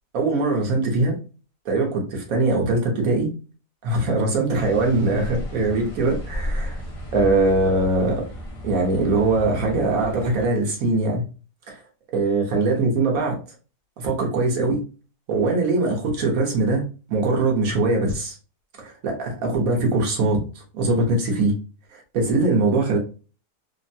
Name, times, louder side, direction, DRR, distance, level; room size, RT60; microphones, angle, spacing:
voice 1, 0.1-1.2 1.6-3.3 3.8-6.8 7.1-8.2 8.6-11.2 11.7-11.8 12.1-13.4 14.0-14.8 15.3-18.4 18.8-21.5 21.9-23.0, right 2 dB, 60° right, 1 dB, 1.3 m, -22 dB
sound 1, 4.5-10.5, left 1 dB, 35° left, 0.5 m, -33 dB
3.5 x 2.2 x 2.6 m, 0.34 s
omnidirectional pair, 1.8 m